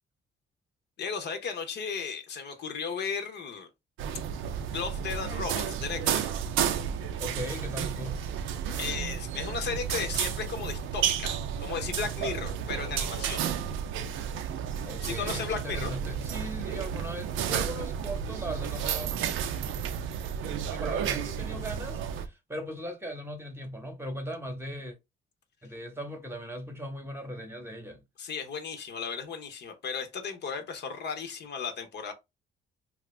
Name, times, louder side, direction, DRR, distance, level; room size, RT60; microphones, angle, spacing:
voice 1, 1.0-3.7 4.3-4.4 4.7-6.3 8.8-13.4 15.0-15.9 28.2-32.1, left 6 dB, 60° left, 0.8 m, -35 dB
sound 1, 4.0-22.3, right 8 dB, 90° right, 0.5 m, -32 dB
voice 2, 7.2-8.2 14.8-19.1 20.6-24.9 25.6-28.0, equal, 10° right, 0.9 m, -38 dB
2.7 x 2.5 x 3.2 m
cardioid pair, 90°, 20 cm